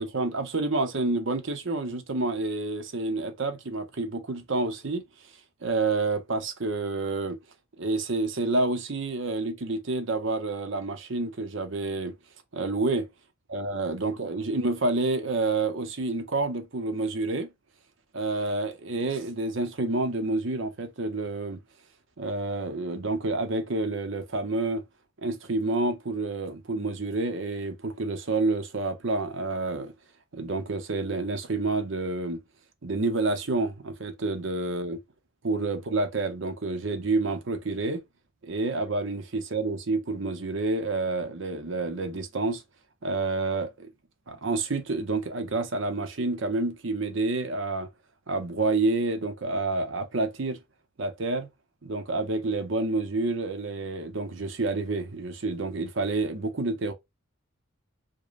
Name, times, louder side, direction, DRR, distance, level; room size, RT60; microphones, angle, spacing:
voice 1, 0.0-5.0 5.6-7.4 7.8-12.1 12.5-13.1 13.5-17.5 18.1-21.6 22.2-24.8 25.2-29.9 30.3-32.4 32.8-35.0 35.4-38.0 38.4-42.6 43.0-43.9 44.3-47.9 48.3-50.6 51.0-51.5 51.8-56.9, right 3 dB, 60° right, 0.8 m, -28 dB
5.1 x 2.2 x 2.5 m
head